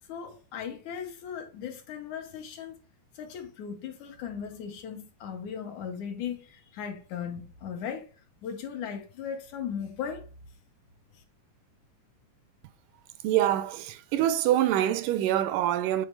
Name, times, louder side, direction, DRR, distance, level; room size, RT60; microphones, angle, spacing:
voice 1, 0.1-2.8 3.1-10.3 11.1-11.2, left 7 dB, 70° left, 2.2 m, -37 dB
voice 2, 13.2-16.1, right 12 dB, 80° right, 2.0 m, -25 dB
8.2 x 4.2 x 3.2 m
omnidirectional pair, 3.9 m